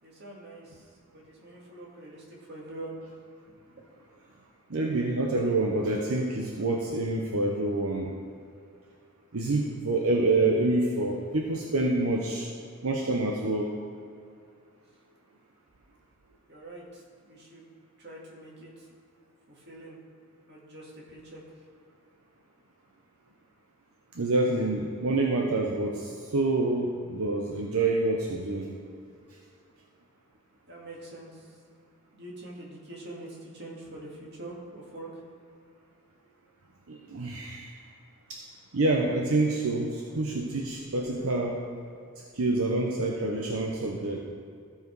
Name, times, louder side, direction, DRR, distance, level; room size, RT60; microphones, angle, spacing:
voice 1, 0.0-0.8 1.1-2.9 3.5-3.6 4.9-5.0 16.5-17.7 18.0-18.9 19.5-20.0 20.5-21.4 30.7-31.5 32.1-35.2, right 1 dB, 50° right, -3 dB, 2.1 m, -44 dB
voice 2, 4.7-8.1 9.3-12.5 12.8-13.7 24.1-28.7 36.9-37.7 38.3-38.4 38.7-41.6 42.3-44.2, right 2 dB, 80° right, 0 dB, 0.8 m, -27 dB
14.5 x 4.9 x 4.7 m, 2.4 s
head